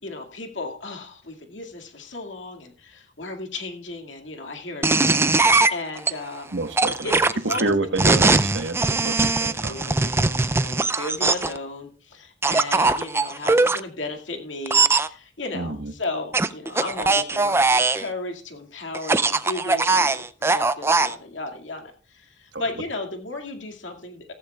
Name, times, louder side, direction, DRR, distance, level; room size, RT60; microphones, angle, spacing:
voice 1, 0.0-6.6 7.0-7.7 8.1-8.2 9.2-20.3 20.5-24.3, left 2 dB, 85° left, 4 dB, 2.2 m, -35 dB
sound 1, 4.8-6.1 6.8-11.6 12.4-13.8 14.7-15.1 16.3-18.1 18.9-21.1, right 3 dB, 15° right, 0.4 m, -20 dB
voice 2, 6.5-7.1 7.6-9.8 15.5-15.9 22.5-22.6, right 2 dB, 75° right, 8 dB, 1.3 m, -28 dB
15.5 x 14.5 x 2.4 m, 0.41 s
head